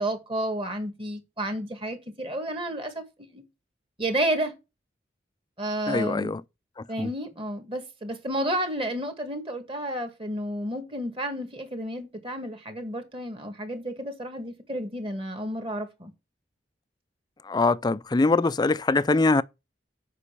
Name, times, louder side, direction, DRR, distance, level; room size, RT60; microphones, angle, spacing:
voice 1, 0.0-3.0 3.3-3.4 4.0-4.5 5.6-6.3 6.9-16.1, right 1 dB, 30° right, 2.0 m, -31 dB
voice 2, 5.9-6.4 7.0-7.1 17.5-19.4, left 3 dB, 25° left, 0.4 m, -23 dB
8.2 x 5.4 x 6.8 m
head